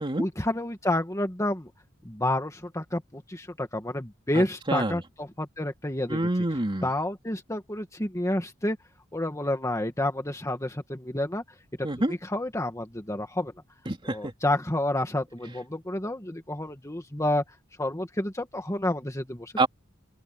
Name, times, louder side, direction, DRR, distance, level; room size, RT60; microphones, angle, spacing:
voice 1, 0.2-1.7 2.0-6.3 6.8-8.8 9.1-11.4 12.1-13.5 14.0-17.4 17.8-19.5, left 1 dB, 15° left, 1.9 m, -29 dB
voice 2, 4.4-5.0 6.1-6.9 11.8-12.1 13.9-14.3 19.6-19.7, right 2 dB, 25° right, 2.8 m, -27 dB
open air
head